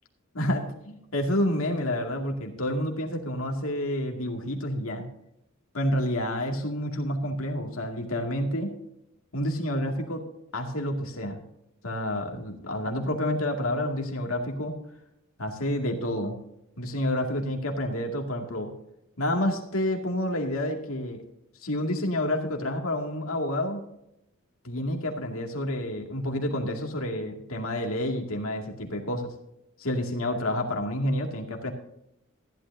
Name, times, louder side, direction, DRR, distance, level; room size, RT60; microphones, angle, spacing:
voice 1, 0.3-5.1 5.7-8.7 9.3-10.2 10.5-11.4 11.8-14.8 15.4-16.4 16.8-18.7 19.2-21.2 21.6-23.8 24.6-29.3 29.8-31.7, left 1 dB, 85° left, 2 dB, 2.3 m, -29 dB
15.0 x 11.5 x 2.7 m, 0.80 s
head